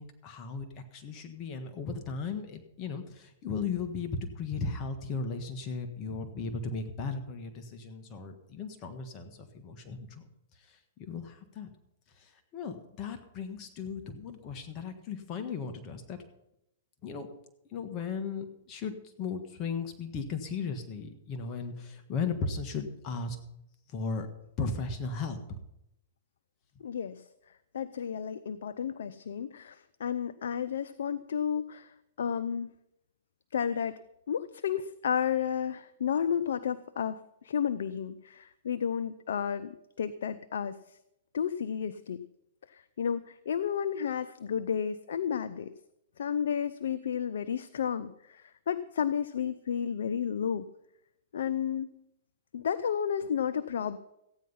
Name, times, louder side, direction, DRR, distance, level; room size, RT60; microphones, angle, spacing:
voice 1, 0.0-11.7 12.1-16.2 17.0-17.3 17.7-23.4 23.9-24.3 24.6-25.6, left 4 dB, 35° left, 6 dB, 1.5 m, -36 dB
voice 2, 26.8-27.2 27.7-32.7 33.5-34.0 34.3-41.0 41.3-42.2 42.7-45.7 46.2-50.7 51.3-52.0 52.5-54.0, left 8 dB, 75° left, 12 dB, 0.6 m, -32 dB
15.0 x 9.5 x 5.6 m, 0.84 s
hypercardioid pair, 135°, 0 cm